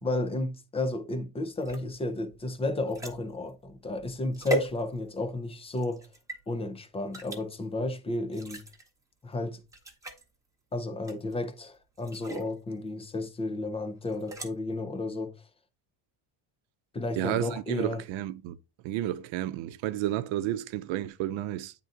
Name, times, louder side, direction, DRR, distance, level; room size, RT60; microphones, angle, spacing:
voice 1, 0.0-6.1 6.5-8.6 9.2-9.6 10.7-15.3 16.9-18.0, left 2 dB, 15° left, 0.4 m, -32 dB
sound 1, 1.6-5.3 5.8-6.4 7.1-7.4 8.3-8.9 9.3-9.4 9.7-10.2 11.0-11.4 12.0-12.5 14.0-14.5, equal, 5° right, 0.9 m, -37 dB
voice 2, 17.2-18.6 18.8-21.7, right 13 dB, 65° right, 0.7 m, -31 dB
9.0 x 3.8 x 3.7 m
cardioid pair, 175°, 50 cm